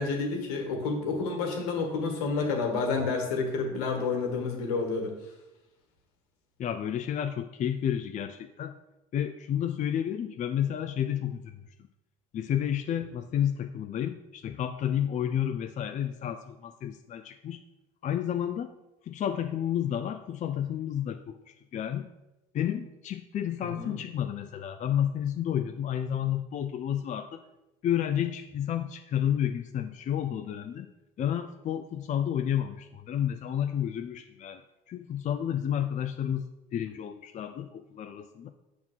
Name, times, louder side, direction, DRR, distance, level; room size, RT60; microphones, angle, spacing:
voice 1, 0.0-5.1 23.7-24.0, left 4 dB, 75° left, 3 dB, 1.7 m, -29 dB
voice 2, 6.6-8.8 9.1-11.6 12.3-17.6 18.0-18.7 19.0-22.1 22.5-27.4 27.8-30.9 31.2-34.6 34.9-38.5, left 10 dB, 40° left, 8 dB, 0.5 m, -31 dB
7.1 x 3.6 x 6.2 m, 0.96 s
hypercardioid pair, 65°, 20 cm